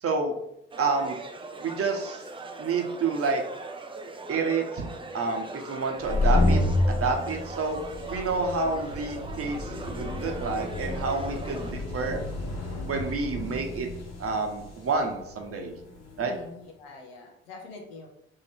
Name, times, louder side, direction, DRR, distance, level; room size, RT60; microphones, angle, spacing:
voice 1, 0.0-0.3 0.8-1.2 1.6-2.2 2.6-3.4 4.3-4.9 5.1-6.6 6.9-7.8 8.1-12.2 12.9-13.9 14.2-15.7 16.2-16.3, right 4 dB, 50° right, 3 dB, 0.9 m, -29 dB
sound 1, 0.7-11.7, right 3 dB, 15° right, 0.5 m, -40 dB
sound 2, 5.9-16.3, left 2 dB, 55° left, 1.2 m, -30 dB
voice 2, 16.2-18.1, left 3 dB, 90° left, 1 dB, 0.7 m, -45 dB
3.1 x 2.9 x 4.3 m, 0.77 s
hypercardioid pair, 45°, 30 cm